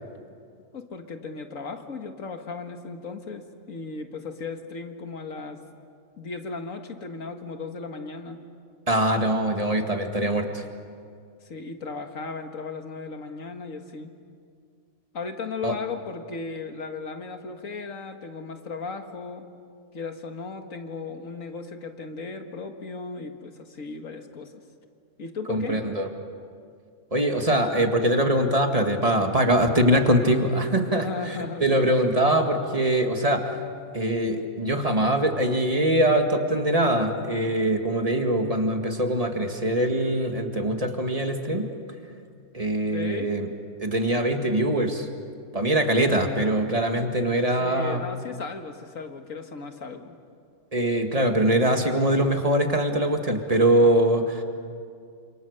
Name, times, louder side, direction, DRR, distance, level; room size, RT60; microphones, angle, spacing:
voice 1, 0.7-5.6 6.2-8.4 11.4-14.1 15.1-19.5 19.9-24.6 25.2-25.8 31.0-32.0 42.8-43.3 47.6-50.2, left 4 dB, 70° left, 5 dB, 2.1 m, -36 dB
voice 2, 8.9-10.6 15.6-15.7 25.5-26.1 27.1-33.6 33.9-41.7 42.5-43.5 43.8-45.1 45.5-48.0 50.7-54.4, right 1 dB, 25° right, 4 dB, 2.0 m, -23 dB
29.0 x 27.0 x 6.7 m, 2.3 s
omnidirectional pair, 1.5 m